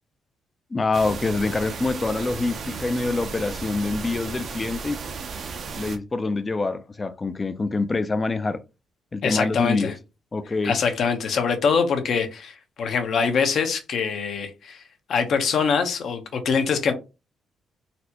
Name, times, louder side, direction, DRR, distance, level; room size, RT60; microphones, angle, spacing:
voice 1, 0.7-5.0 5.8-8.6 9.1-9.9 10.3-10.8, left 3 dB, 25° left, 0.4 m, -25 dB
sound 1, 0.9-6.0, right 5 dB, 55° right, 0.6 m, -34 dB
voice 2, 9.2-9.9 10.6-14.8 15.1-16.9, left 5 dB, 65° left, 0.8 m, -23 dB
4.1 x 2.2 x 2.8 m
cardioid pair, 90°, 0 cm